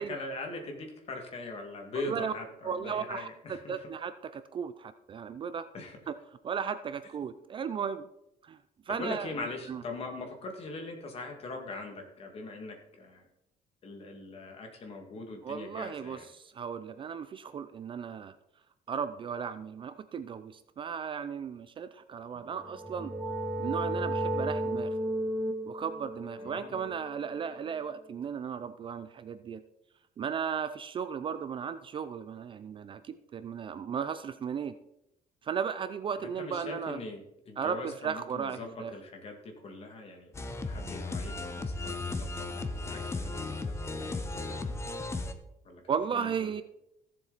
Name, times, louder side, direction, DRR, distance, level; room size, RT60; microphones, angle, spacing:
voice 1, 0.0-3.9 5.7-6.0 8.9-13.3 13.8-16.3 26.4-26.9 36.2-40.3 40.7-44.8 45.6-46.6, left 2 dB, 40° left, 3 dB, 2.1 m, -41 dB
voice 2, 2.6-5.7 6.1-6.2 6.4-8.1 8.4-8.6 8.9-9.3 9.7-9.8 15.4-16.2 16.5-18.3 18.9-23.1 23.6-24.9 25.7-29.6 30.2-34.7 35.4-37.0 37.6-38.9 45.9-46.6, right 7 dB, 30° right, 11 dB, 0.4 m, -35 dB
sound 1, 22.5-28.1, right 1 dB, 10° right, 1.0 m, -34 dB
sound 2, 40.3-45.3, left 3 dB, 15° left, 0.8 m, -35 dB
15.5 x 7.4 x 4.1 m, 0.83 s
cardioid pair, 170°, 16 cm